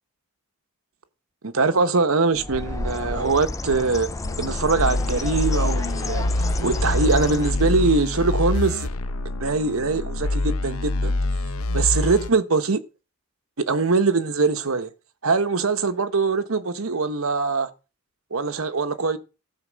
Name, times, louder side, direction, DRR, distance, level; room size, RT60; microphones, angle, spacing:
voice 1, 1.4-4.1 4.4-6.3 6.6-8.9 9.4-11.1 11.7-12.8 13.6-14.9 15.2-17.7 18.3-19.2, right 4 dB, 75° right, 1.0 m, -22 dB
Bird, 2.3-7.9, left 2 dB, 15° left, 0.5 m, -31 dB
sound 1, 4.2-12.3, left 2 dB, 85° left, 1.0 m, -25 dB
13.5 x 4.9 x 7.4 m
head